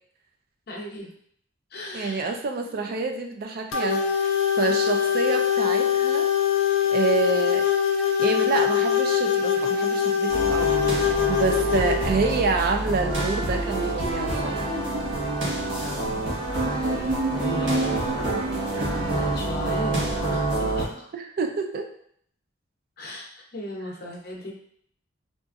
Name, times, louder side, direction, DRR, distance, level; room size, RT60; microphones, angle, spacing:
voice 1, 0.7-1.1 1.7-2.3 2.6-3.1 11.8-12.1 15.8-16.5 17.0-18.4 18.7-18.8 19.1-21.1 23.0-24.5, left 1 dB, 55° left, -1 dB, 0.7 m, -37 dB
voice 2, 1.9-4.3 4.5-6.3 6.9-7.7 8.2-14.6 21.1-21.9, right 4 dB, 50° right, 4 dB, 0.4 m, -27 dB
sound 1, 3.7-12.1, left 8 dB, 85° left, 0.4 m, -23 dB
sound 2, 10.3-20.8, right 2 dB, 85° right, 1.2 m, -27 dB
3.8 x 2.5 x 2.4 m, 0.64 s
head